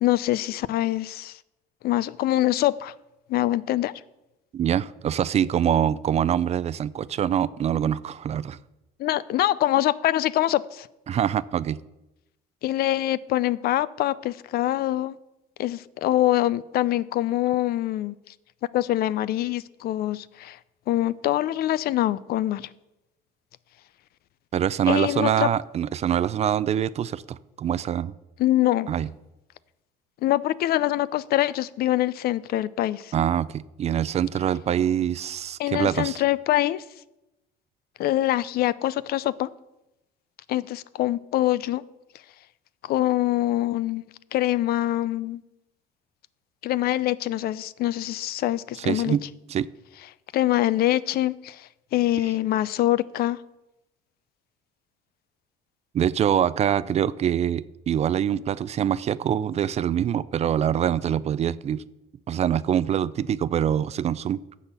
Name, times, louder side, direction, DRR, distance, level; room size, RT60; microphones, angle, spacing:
voice 1, 0.0-1.4 1.8-2.9 3.3-3.9 9.0-10.9 12.6-15.2 15.6-18.1 18.7-20.6 20.9-22.7 24.9-25.5 28.4-28.9 30.2-33.1 35.6-36.8 38.0-39.5 40.5-41.8 42.8-45.4 46.6-49.2 50.3-53.4, left 14 dB, 65° left, 18 dB, 0.4 m, -24 dB
voice 2, 4.5-8.6 11.1-11.8 24.5-28.1 28.9-29.1 33.1-36.2 48.8-49.2 49.5-49.7 55.9-61.8 62.3-64.4, right 9 dB, 40° right, 18 dB, 0.4 m, -24 dB
12.0 x 4.2 x 8.0 m, 0.95 s
cardioid pair, 110°, 17 cm